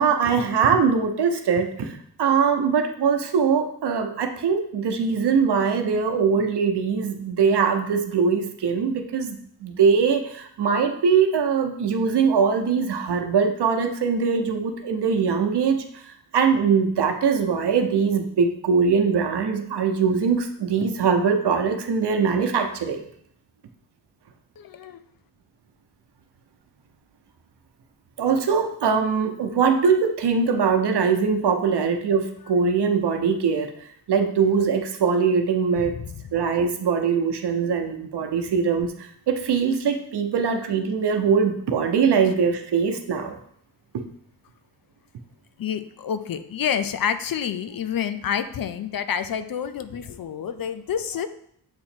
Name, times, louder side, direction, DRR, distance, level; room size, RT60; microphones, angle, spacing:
voice 1, 0.0-23.0 28.2-36.0 36.3-43.4, right 6 dB, 85° right, 6 dB, 0.8 m, -22 dB
voice 2, 24.6-25.0 35.8-36.3 45.6-51.3, left 8 dB, 60° left, 11 dB, 0.5 m, -28 dB
7.7 x 2.9 x 4.3 m, 0.68 s
wide cardioid pair, 120°, 39 cm